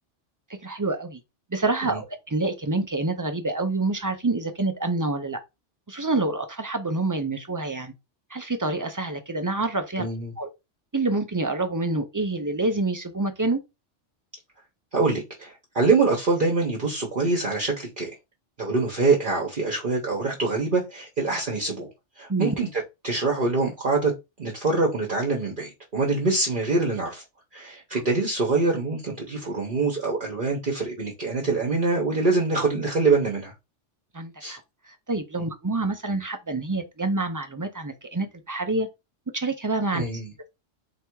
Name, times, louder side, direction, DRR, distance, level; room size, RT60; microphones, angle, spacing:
voice 1, 0.6-1.2 1.5-5.4 5.9-7.9 8.3-10.1 10.4-10.5 10.9-13.6 22.3-22.5 34.1-38.9 39.3-40.0, right 2 dB, 30° right, 0.4 m, -27 dB
voice 2, 10.0-10.3 14.9-18.1 18.6-21.9 22.2-24.1 24.4-27.2 27.5-33.5 34.4-34.6 39.9-40.3, right 3 dB, 45° right, 1.1 m, -24 dB
3.4 x 2.9 x 4.6 m
omnidirectional pair, 1.2 m